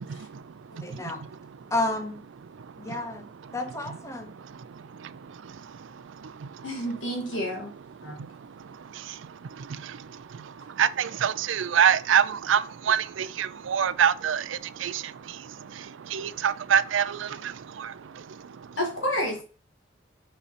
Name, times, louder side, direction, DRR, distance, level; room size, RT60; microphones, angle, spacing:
voice 1, 0.8-1.2 1.7-2.2 2.8-3.2 3.5-4.3, left 2 dB, 15° left, 0.7 m, -30 dB
voice 2, 6.6-7.7 8.0-8.2 18.8-19.4, equal, 80° left, 2.3 m, -30 dB
voice 3, 10.8-12.6 12.9-14.4 14.8-14.9 16.1-17.3, right 8 dB, 85° right, 0.4 m, -23 dB
5.6 x 4.3 x 4.2 m
head